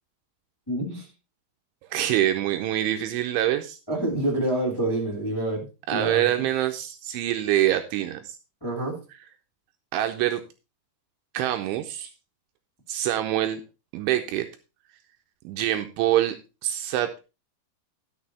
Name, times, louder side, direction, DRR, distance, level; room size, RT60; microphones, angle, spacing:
voice 1, 0.7-1.1 3.9-6.5 8.6-9.0, right 1 dB, 5° left, -1 dB, 2.3 m, -27 dB
voice 2, 1.8-3.8 5.9-8.4 9.9-10.4 11.3-12.1 12.9-13.6 13.9-14.5 15.4-16.4 16.6-17.2, right 12 dB, 80° right, 7 dB, 3.0 m, -25 dB
11.5 x 6.8 x 4.2 m, 0.30 s
omnidirectional pair, 5.8 m